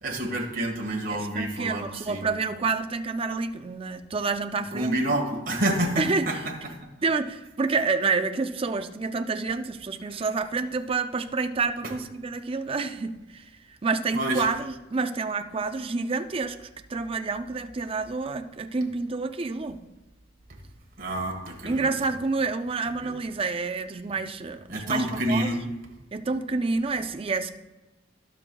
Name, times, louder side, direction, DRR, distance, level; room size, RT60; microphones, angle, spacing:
voice 1, 0.0-2.3 4.7-6.5 10.1-10.2 11.8-11.9 14.1-14.4 21.0-21.9 23.0-23.1 24.7-25.6, right 1 dB, 45° right, 0 dB, 1.5 m, -28 dB
voice 2, 1.1-5.0 6.0-6.3 7.0-13.4 13.8-19.8 21.7-25.5 26.1-27.5, right 4 dB, 30° right, 8 dB, 0.4 m, -28 dB
15.5 x 6.2 x 2.3 m, 1.1 s
head